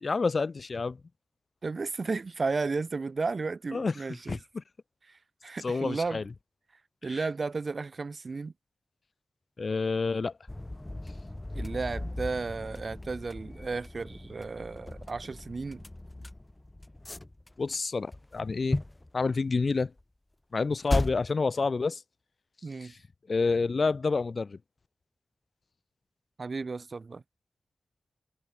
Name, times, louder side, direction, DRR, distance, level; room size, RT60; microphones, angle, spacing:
voice 1, 0.0-1.0 3.7-3.9 4.3-4.6 5.6-6.2 7.1-7.2 9.6-10.3 17.6-18.8 19.1-19.9 20.5-22.0 22.8-22.9 23.3-24.6, left 4 dB, 60° left, 0.9 m, -28 dB
voice 2, 1.6-4.4 5.1-6.2 7.0-8.5 11.5-15.8 22.6-22.9 26.4-27.2, right 4 dB, 55° right, 0.7 m, -33 dB
sound 1, 10.5-17.8 18.1-19.1 20.0-20.1 20.9-21.4, left 1 dB, 20° left, 0.7 m, -36 dB
wide cardioid pair, 70°, 0 cm